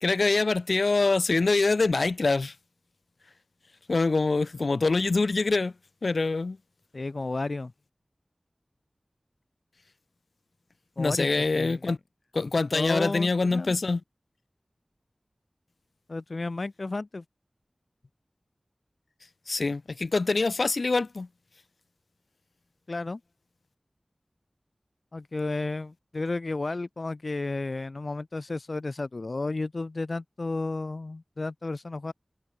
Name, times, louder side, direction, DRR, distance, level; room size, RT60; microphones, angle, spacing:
voice 1, 0.0-2.5 3.9-5.7 6.0-6.6 11.0-12.0 12.3-14.0 19.5-21.3, left 3 dB, 80° left, 1.7 m, -25 dB
voice 2, 6.9-7.7 11.0-11.9 12.7-13.8 16.1-17.2 22.9-23.2 25.1-32.1, left 3 dB, 60° left, 4.1 m, -32 dB
wide cardioid pair, 65°, 0 cm